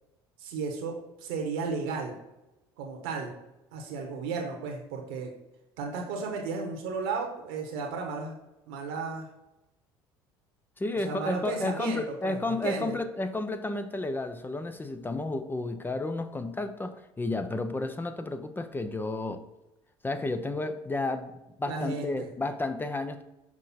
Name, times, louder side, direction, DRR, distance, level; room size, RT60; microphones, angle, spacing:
voice 1, 0.4-2.2 2.8-3.3 3.7-5.3 5.8-8.3 8.7-9.3 11.0-13.0 21.7-22.3, right 4 dB, 70° right, 1 dB, 1.2 m, -34 dB
voice 2, 10.8-19.4 20.0-21.3 21.6-23.2, left 2 dB, 15° left, 9 dB, 0.6 m, -32 dB
6.0 x 5.2 x 4.2 m, 0.95 s
hypercardioid pair, 70°, 13 cm